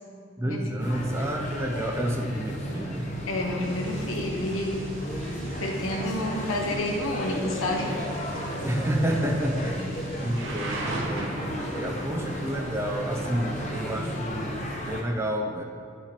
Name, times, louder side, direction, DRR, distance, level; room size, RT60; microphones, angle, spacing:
voice 1, 0.4-3.1 8.6-9.9 10.2-11.4 11.7-15.6, equal, 15° right, 3 dB, 0.4 m, -29 dB
sound 1, 0.8-15.0, equal, 35° left, 0.8 m, -34 dB
voice 2, 3.3-4.9 5.6-7.9, left 1 dB, 90° left, 0 dB, 1.1 m, -29 dB
Thunder / Rain, 3.6-14.2, right 2 dB, 80° right, 1.1 m, -41 dB
10.0 x 5.6 x 3.0 m, 2.3 s
head